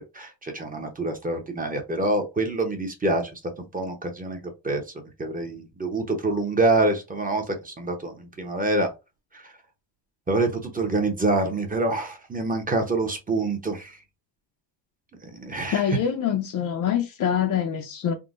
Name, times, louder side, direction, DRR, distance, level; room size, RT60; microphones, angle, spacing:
voice 1, 0.0-3.3 3.6-4.8 5.2-8.9 9.3-9.5 10.3-14.0 15.2-15.8, right 2 dB, 20° right, 0.7 m, -26 dB
voice 2, 15.7-18.1, left 9 dB, 45° left, 0.5 m, -25 dB
3.7 x 2.1 x 2.5 m
cardioid pair, 120°, 46 cm